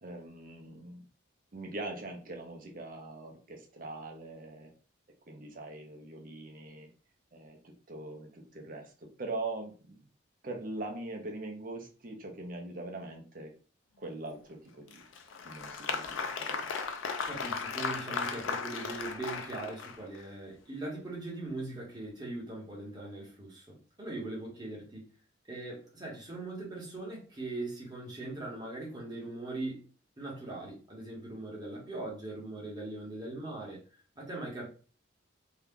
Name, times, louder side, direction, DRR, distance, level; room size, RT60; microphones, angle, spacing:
voice 1, 0.0-1.0 1.5-4.7 5.3-6.9 7.3-10.1 10.4-13.5 14.0-15.0 15.4-16.7, right 2 dB, 40° right, 0.6 m, -42 dB
Applause, 14.9-20.2, left 5 dB, 75° left, 0.4 m, -36 dB
voice 2, 17.3-25.1 25.5-29.8 30.2-33.8 34.1-34.7, right 2 dB, 20° right, 1.1 m, -40 dB
2.7 x 2.3 x 3.5 m
head